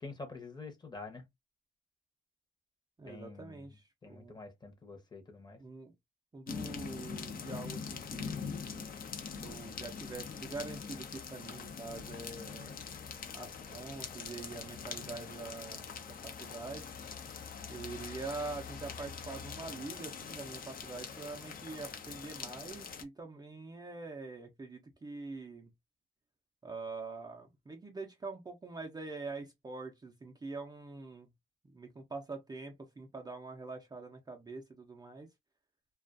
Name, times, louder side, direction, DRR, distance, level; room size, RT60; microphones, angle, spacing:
voice 1, 0.0-1.2 3.0-3.7 4.0-5.6, left 3 dB, 20° left, 0.8 m, -47 dB
voice 2, 3.0-4.4 5.6-5.9 6.3-8.9 9.4-12.8 13.3-16.9 17.7-25.7 26.6-31.3 31.6-35.3, right 3 dB, 20° right, 0.5 m, -45 dB
sound 1, 6.5-23.0, left 6 dB, 45° left, 0.6 m, -43 dB
2.3 x 2.3 x 2.4 m
cardioid pair, 90°, 20 cm